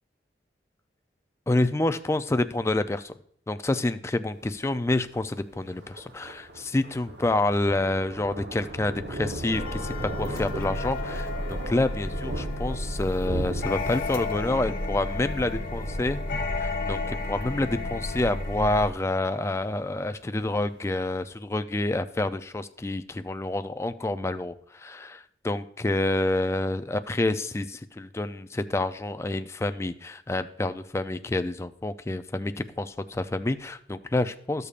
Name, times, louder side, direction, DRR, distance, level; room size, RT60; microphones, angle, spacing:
voice 1, 1.5-3.1 3.5-16.2 16.6-34.7, left 2 dB, 15° left, 10 dB, 0.4 m, -28 dB
Thunder, 4.3-21.2, right 1 dB, 65° right, 1.0 m, -39 dB
sound 1, 9.5-18.9, left 2 dB, 50° left, 0.7 m, -32 dB
14.0 x 6.7 x 2.4 m, 0.62 s
head